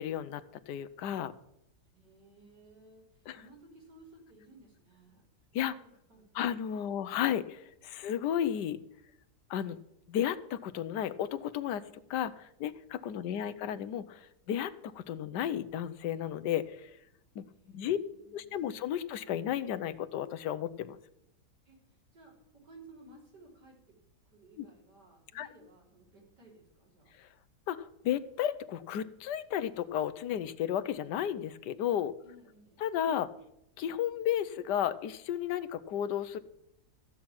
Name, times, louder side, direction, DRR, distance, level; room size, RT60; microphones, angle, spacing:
voice 1, 0.0-1.3 3.3-3.4 5.5-5.8 6.4-8.8 9.5-9.8 10.1-11.8 12.1-16.9 17.3-17.4 17.7-18.0 18.3-21.0 24.6-24.7 25.3-25.5 27.2-27.3 27.7-32.2 32.8-33.3 33.8-36.4, left 10 dB, 85° left, 12 dB, 1.3 m, -33 dB
voice 2, 1.9-6.4 6.7-6.9 13.0-13.4 17.6-19.1 21.6-24.0 24.2-27.1 32.2-32.8, right 2 dB, 90° right, -3 dB, 4.8 m, -58 dB
14.5 x 6.0 x 8.7 m, 0.79 s
omnidirectional pair, 1.8 m